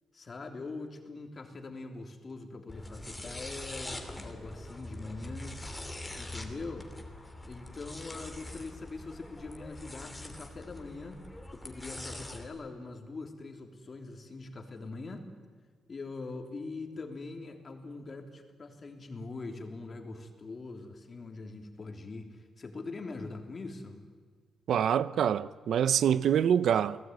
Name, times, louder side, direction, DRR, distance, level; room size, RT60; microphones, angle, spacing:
voice 1, 0.1-5.6 6.2-6.9 7.4-11.2 11.5-15.2 15.9-24.0, left 3 dB, 30° left, 3.3 m, -42 dB
sound 1, 2.7-12.4, left 1 dB, 10° left, 2.8 m, -43 dB
voice 2, 24.7-27.0, right 9 dB, 65° right, 0.7 m, -25 dB
29.5 x 19.0 x 9.5 m
wide cardioid pair, 155°, 0 cm